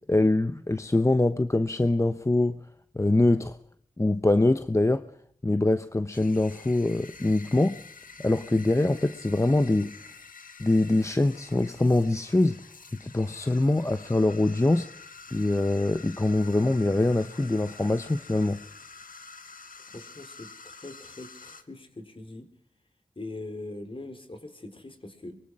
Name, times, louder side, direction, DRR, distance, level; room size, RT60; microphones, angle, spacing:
voice 1, 0.1-2.6 2.9-3.6 4.0-5.0 5.4-7.8 8.2-9.9 10.6-12.6 13.0-14.9 15.3-18.6, left 2 dB, 20° left, 0.9 m, -24 dB
sound 1, 6.1-21.6, left 5 dB, 75° left, 1.7 m, -48 dB
voice 2, 19.9-22.5 23.2-25.4, left 2 dB, 40° left, 4.1 m, -42 dB
24.0 x 23.0 x 4.8 m
wide cardioid pair, 65°, 14 cm